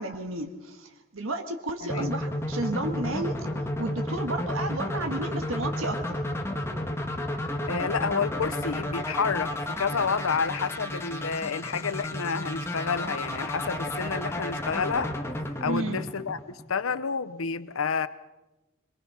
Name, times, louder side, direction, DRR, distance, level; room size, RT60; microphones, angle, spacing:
voice 1, 0.0-6.2 15.7-16.0, right 1 dB, 80° right, 5 dB, 1.8 m, -32 dB
sound 1, 1.9-16.8, left 1 dB, 10° left, 1.8 m, -32 dB
voice 2, 7.7-15.1 15.6-18.1, left 5 dB, 90° left, 14 dB, 0.8 m, -29 dB
23.5 x 23.0 x 5.7 m, 1.0 s
head